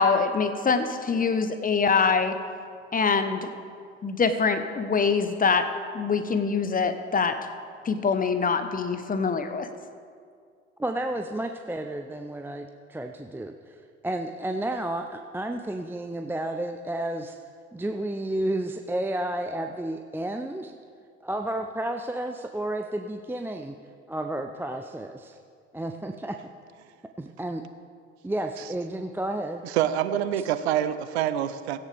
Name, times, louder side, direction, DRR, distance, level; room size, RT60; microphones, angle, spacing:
voice 1, 0.0-2.4 2.9-3.5 4.0-7.4 7.8-9.7, left 5 dB, 25° left, 9 dB, 1.1 m, -24 dB
voice 2, 10.8-13.8 14.0-17.4 17.7-20.7 21.2-23.7 24.1-25.4 25.7-26.4 27.2-27.6 28.2-29.6, right 1 dB, 5° right, 5 dB, 0.6 m, -31 dB
voice 3, 29.6-31.8, right 11 dB, 70° right, 13 dB, 0.7 m, -26 dB
17.0 x 15.0 x 3.6 m, 2.2 s
figure-of-eight pair, 60°, 34 cm